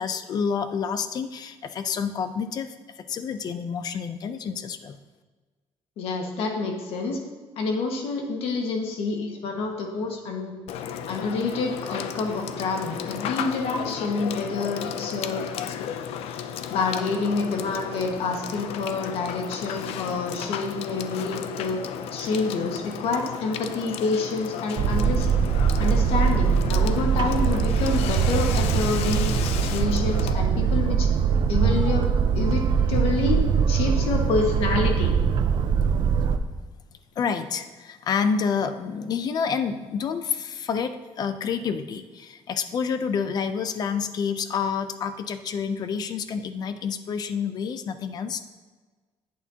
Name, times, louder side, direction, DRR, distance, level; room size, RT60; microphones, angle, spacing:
voice 1, 0.0-5.0 37.2-48.4, left 6 dB, 40° left, 10 dB, 0.5 m, -28 dB
voice 2, 6.0-7.2 7.6-10.5 11.1-15.4 16.3-16.4 16.7-21.8 22.1-25.3 25.8-31.1 31.5-32.1 32.3-33.4 33.7-35.1, left 4 dB, 70° left, 2 dB, 1.6 m, -28 dB
Water / Water tap faucet / Sink (filling or washing), 10.7-30.3, left 8 dB, 90° left, 0.5 m, -34 dB
Boat Water vehicle, 24.8-36.4, right 6 dB, 50° right, 0.5 m, -22 dB
10.5 x 8.6 x 2.9 m, 1.4 s
cardioid pair, 170°, 10 cm